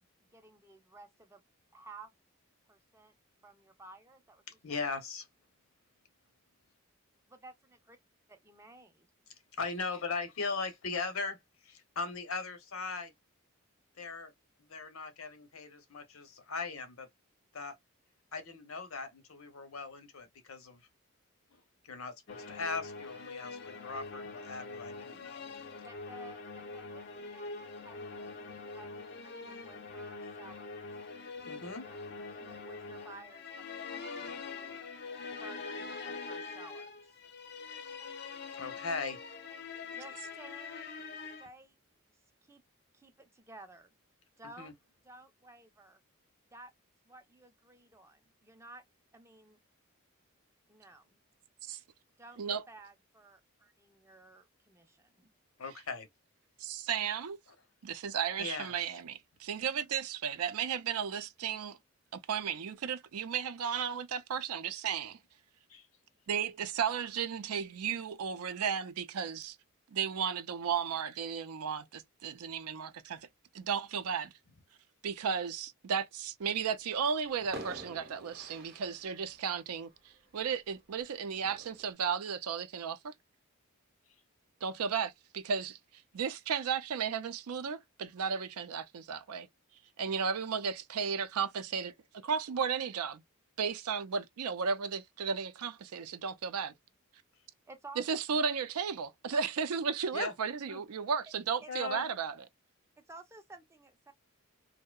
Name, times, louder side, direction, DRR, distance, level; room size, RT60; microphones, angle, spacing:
voice 1, 0.2-1.4 1.7-2.1 2.7-3.1 3.4-4.4 4.7-5.0 7.3-8.0 8.3-9.1 25.8-30.8 31.8-34.9 35.2-37.2 39.9-41.0 41.4-41.7 42.1-42.6 42.9-43.9 44.4-44.7 45.0-46.0 46.5-46.7 47.0-48.8 49.1-49.6 50.7-51.2 52.2-55.3 97.7-98.0 101.6-101.7 103.1-104.1, right 2 dB, 10° right, 0.4 m, -54 dB
voice 2, 4.6-5.3 9.6-11.4 11.6-13.1 14.0-14.3 14.7-17.1 17.5-17.8 18.3-20.8 21.8-25.5 31.5-31.8 38.5-39.2 44.6-44.7 55.6-56.1 58.4-58.7 65.7-65.9 100.1-100.3 100.7-100.8 101.7-102.0, left 4 dB, 75° left, 0.8 m, -39 dB
sound 1, 22.3-41.5, left 4 dB, 50° left, 0.4 m, -44 dB
voice 3, 56.6-57.4 57.8-61.8 62.1-65.2 66.3-69.6 69.9-73.3 73.5-74.3 75.0-83.1 84.6-89.5 90.0-91.9 92.2-93.2 93.6-96.7 98.1-102.4, right 6 dB, 90° right, 0.4 m, -34 dB
sound 2, 76.8-76.9 77.5-80.7 81.4-81.9, right 1 dB, 45° right, 0.8 m, -47 dB
2.7 x 2.1 x 2.2 m
head